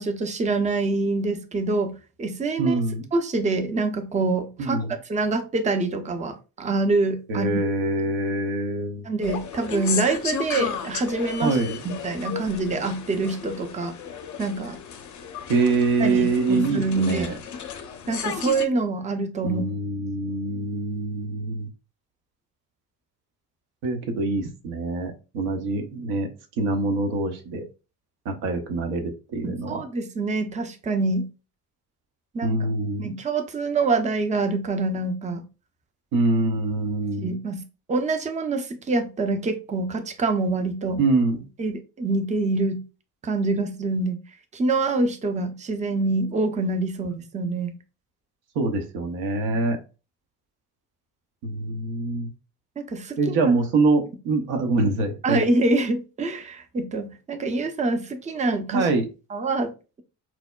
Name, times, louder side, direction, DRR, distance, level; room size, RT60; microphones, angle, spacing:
voice 1, 0.0-2.8 3.1-4.8 5.1-7.5 9.0-11.6 11.8-13.9 14.4-14.8 16.0-17.3 18.1-19.7 29.7-31.3 32.3-32.7 33.0-35.4 37.2-41.0 41.6-42.8 43.2-44.2 44.5-47.8 52.8-53.5 55.2-58.9 59.3-59.7, right 3 dB, 15° right, 0.5 m, -25 dB
voice 2, 2.6-3.1 4.6-4.9 7.3-9.1 11.4-11.8 15.5-17.3 19.4-21.7 23.8-26.3 26.6-27.6 28.3-29.8 32.4-33.1 36.1-37.3 41.0-41.5 48.6-49.8 51.4-52.3 53.2-55.4 58.7-59.1, right 3 dB, 70° right, 0.8 m, -24 dB
sound 1, 9.2-18.7, left 7 dB, 40° left, 0.5 m, -34 dB
4.3 x 2.1 x 2.2 m
hypercardioid pair, 50°, 48 cm